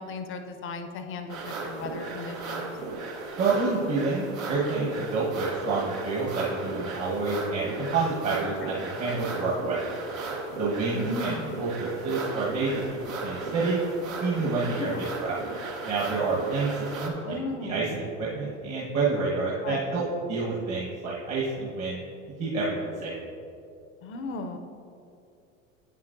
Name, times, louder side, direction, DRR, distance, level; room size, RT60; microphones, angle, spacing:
voice 1, 0.0-2.7 8.6-8.7 10.9-11.6 14.7-15.0 17.2-17.9 19.6-19.8 24.0-24.6, left 3 dB, 30° left, 7 dB, 0.5 m, -36 dB
sound 1, 1.3-17.1, right 3 dB, 75° right, 1.1 m, -36 dB
voice 2, 3.4-9.9 10.6-12.7 13.2-13.8 14.2-14.9 15.2-15.4 15.8-17.3 17.6-20.0 20.3-22.0 22.4-23.1, right 3 dB, 40° right, -6 dB, 1.3 m, -28 dB
8.7 x 7.3 x 2.6 m, 2.6 s
hypercardioid pair, 90°, 41 cm